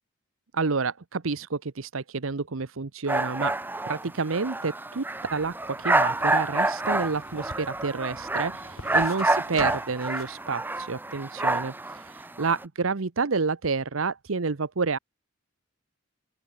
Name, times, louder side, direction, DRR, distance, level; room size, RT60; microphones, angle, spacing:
voice 1, 0.5-3.6 3.9-5.0 5.3-15.0, right 4 dB, 70° right, 0.9 m, -29 dB
sound 1, 3.1-12.6, right 2 dB, 10° right, 0.6 m, -28 dB
sound 2, 5.7-10.4 10.8-10.9, left 2 dB, 75° left, 5.1 m, -45 dB
open air
head